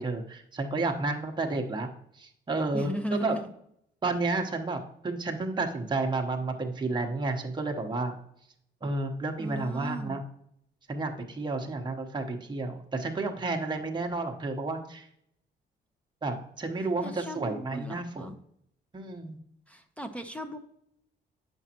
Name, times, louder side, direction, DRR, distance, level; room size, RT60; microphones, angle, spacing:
voice 1, 0.0-1.9 2.1-3.3 4.0-8.1 8.8-10.2 10.9-15.1 16.2-18.3 18.9-19.4, right 3 dB, 20° right, 2 dB, 0.9 m, -31 dB
voice 2, 2.7-3.5 9.4-10.2 17.0-18.4 19.7-20.6, equal, 5° left, 7 dB, 0.6 m, -36 dB
8.0 x 6.1 x 2.9 m, 0.73 s
cardioid pair, 90°, 20 cm